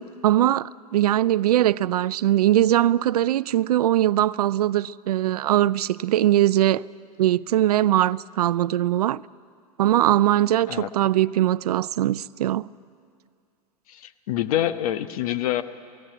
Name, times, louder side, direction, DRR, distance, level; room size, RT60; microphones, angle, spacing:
voice 1, 0.0-6.8 7.2-9.2 9.8-12.7, right 13 dB, 75° right, 0.5 m, -21 dB
voice 2, 13.9-15.6, left 12 dB, 60° left, 1.2 m, -26 dB
23.5 x 16.5 x 9.0 m
hypercardioid pair, 105°, 20 cm